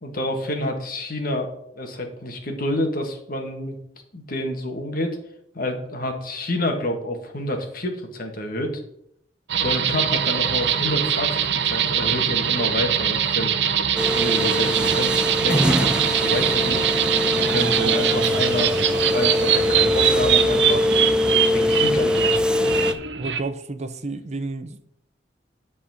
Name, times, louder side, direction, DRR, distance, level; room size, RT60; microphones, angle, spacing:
voice 1, 0.0-1.5 1.8-3.8 4.1-5.2 5.5-8.7 9.6-13.7 14.1-16.9 17.4-20.9 21.5-22.3, left 1 dB, 55° left, 1.7 m, -28 dB
sound 1, 9.5-23.4, right 9 dB, 80° right, 0.7 m, -23 dB
sound 2, 14.0-22.9, left 1 dB, 5° right, 0.4 m, -22 dB
voice 2, 23.1-24.8, right 3 dB, 40° right, 0.7 m, -31 dB
10.5 x 4.2 x 7.0 m
head